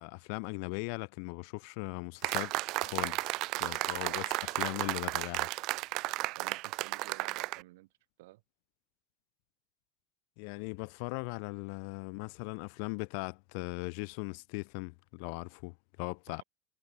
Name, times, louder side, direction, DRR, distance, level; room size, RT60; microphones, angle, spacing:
voice 1, 0.0-2.5 2.8-3.3 3.6-5.5 10.4-16.4, left 40 dB or more, 60° left, 0.9 m, -39 dB
sound 1, 2.2-7.6, right 21 dB, 50° right, 0.5 m, -34 dB
voice 2, 6.3-7.9 8.2-8.4 16.3-16.4, right 19 dB, 85° right, 5.1 m, -53 dB
supercardioid pair, 160°, 0 cm